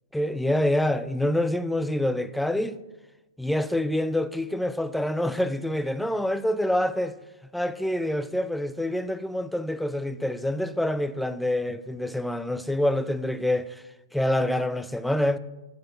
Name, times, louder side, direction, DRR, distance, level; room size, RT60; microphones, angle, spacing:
voice 1, 0.1-2.8 3.4-7.1 7.5-13.8 14.1-15.4, left 1 dB, ahead, 0.6 m, -26 dB
11.5 x 6.2 x 7.2 m
figure-of-eight pair, 105°, 0 cm